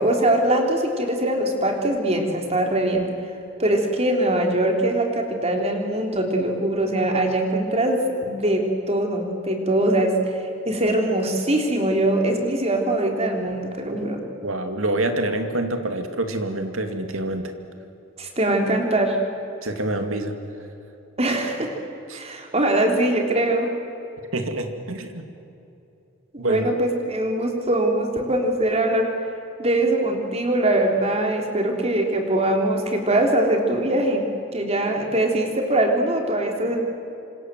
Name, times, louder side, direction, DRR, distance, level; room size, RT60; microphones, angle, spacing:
voice 1, 0.0-3.1 3.6-14.2 18.2-19.2 21.2-21.8 22.1-23.7 26.3-29.1 29.6-36.8, right 1 dB, 30° right, 2 dB, 3.7 m, -22 dB
voice 2, 14.4-17.5 19.6-20.3 22.1-22.2 24.3-25.2 26.4-26.7, right 1 dB, 75° right, 6 dB, 2.6 m, -26 dB
27.5 x 26.5 x 7.7 m, 2.8 s
head